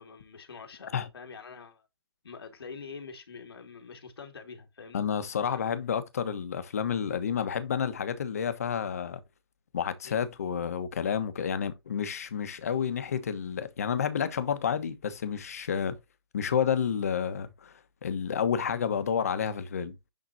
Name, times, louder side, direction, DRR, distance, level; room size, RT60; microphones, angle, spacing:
voice 1, 0.0-1.9 2.2-5.0 5.4-5.8 10.0-10.2, left 5 dB, 75° left, 2.4 m, -45 dB
voice 2, 4.9-9.2 9.7-16.0 16.3-17.7 18.0-20.0, left 7 dB, 40° left, 1.2 m, -30 dB
10.5 x 4.0 x 2.8 m
hypercardioid pair, 180°, 13 cm